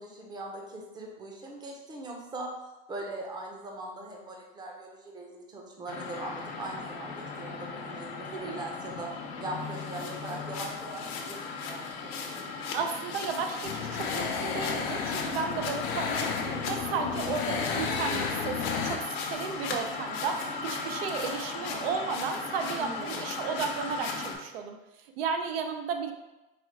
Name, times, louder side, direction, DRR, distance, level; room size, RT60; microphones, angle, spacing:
voice 1, 0.0-2.5 2.9-9.1 9.4-12.5 22.7-23.3, right 2 dB, 15° right, 0 dB, 0.7 m, -41 dB
sound 1, 5.9-24.3, left 4 dB, 85° left, 0.9 m, -37 dB
voice 2, 12.7-24.8 25.2-26.1, right 5 dB, 75° right, 5 dB, 0.6 m, -34 dB
sound 2, 13.6-19.0, left 5 dB, 55° left, 0.7 m, -32 dB
4.9 x 2.3 x 4.5 m, 1.0 s
supercardioid pair, 140°, 29 cm